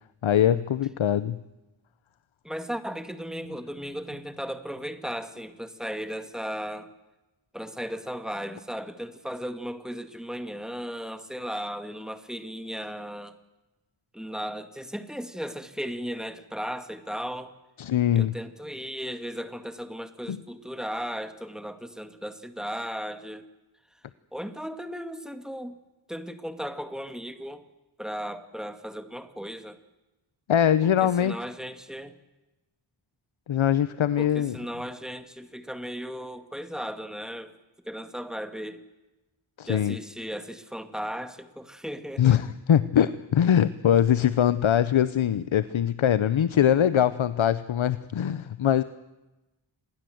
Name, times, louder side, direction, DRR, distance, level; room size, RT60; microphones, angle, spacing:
voice 1, 0.2-1.4 17.8-18.3 20.3-20.4 30.5-31.4 33.5-34.6 39.6-40.0 42.2-48.8, left 9 dB, 75° left, 15 dB, 0.8 m, -22 dB
voice 2, 2.4-6.9 7.5-13.3 14.1-17.5 18.1-23.4 24.3-25.7 26.1-27.6 28.0-29.8 31.0-32.1 34.2-37.5 37.9-38.8 39.7-42.4, equal, ahead, 9 dB, 1.9 m, -36 dB
27.0 x 20.5 x 7.9 m, 1.0 s
wide cardioid pair, 90°, 47 cm